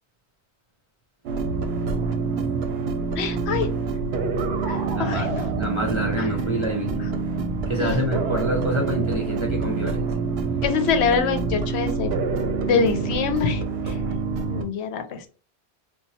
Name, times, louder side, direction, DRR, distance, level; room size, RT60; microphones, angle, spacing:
sound 1, 1.3-14.6, right 4 dB, 70° right, 0.8 m, -26 dB
voice 1, 3.2-3.7 4.7-5.5 6.2-6.3 7.0-7.1 7.8-8.0 10.6-12.1 12.7-14.0 14.5-15.3, left 6 dB, 75° left, 7 dB, 0.8 m, -25 dB
voice 2, 5.0-7.1 7.7-10.2, right 1 dB, 35° right, 1 dB, 0.6 m, -27 dB
2.9 x 2.2 x 4.1 m, 0.38 s
omnidirectional pair, 1.1 m